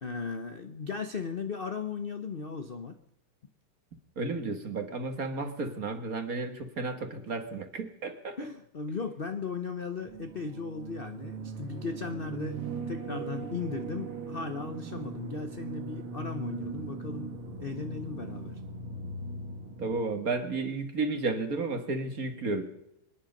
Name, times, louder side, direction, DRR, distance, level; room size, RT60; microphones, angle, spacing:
voice 1, 0.0-2.9 8.4-12.6 12.9-18.6, left 5 dB, 45° left, 7 dB, 0.7 m, -37 dB
voice 2, 4.2-8.4 19.8-22.7, right 3 dB, 45° right, 8 dB, 1.9 m, -32 dB
sound 1, 10.0-20.0, right 4 dB, 85° right, 2.5 m, -39 dB
25.5 x 10.5 x 5.3 m, 0.84 s
omnidirectional pair, 2.3 m